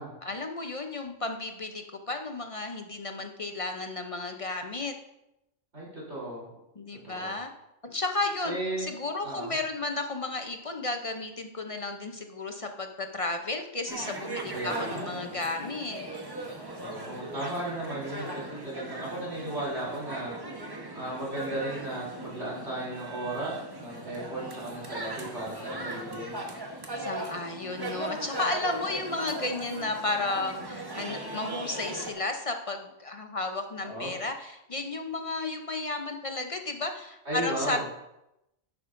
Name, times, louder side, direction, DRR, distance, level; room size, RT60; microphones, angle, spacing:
voice 1, 0.2-4.9 6.8-7.5 7.8-16.0 27.0-37.9, left 2 dB, 40° left, 5 dB, 0.5 m, -33 dB
voice 2, 5.7-6.4 7.0-7.4 8.4-8.9 9.2-9.5 14.5-15.3 16.8-20.4 20.9-26.3 33.8-34.1 37.3-37.9, right 1 dB, 60° right, -5 dB, 3.7 m, -35 dB
sound 1, 13.9-32.1, right 2 dB, 20° right, 0.9 m, -38 dB
11.5 x 8.7 x 2.6 m, 0.88 s
omnidirectional pair, 1.3 m